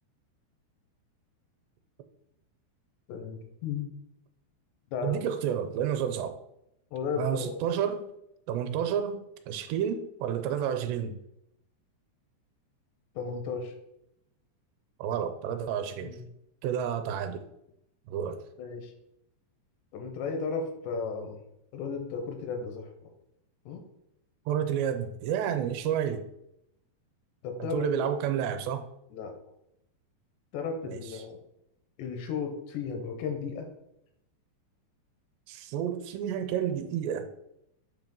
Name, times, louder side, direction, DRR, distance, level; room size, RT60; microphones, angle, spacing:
voice 1, 3.1-3.8 4.9-5.2 6.9-7.6 13.2-13.7 16.0-16.3 18.6-18.9 19.9-21.4 21.7-22.9 23.7-23.8 25.4-25.6 27.4-27.9 29.1-29.3 30.5-31.4 32.0-33.7, left 5 dB, 85° left, 4 dB, 3.1 m, -34 dB
voice 2, 5.0-6.4 7.2-8.1 8.5-9.2 9.5-11.2 15.0-16.2 16.6-17.4 18.1-18.4 24.5-26.2 27.7-28.8 30.8-31.0 35.5-37.3, right 9 dB, 85° right, 8 dB, 2.7 m, -30 dB
8.0 x 2.8 x 5.3 m, 0.81 s
omnidirectional pair, 5.0 m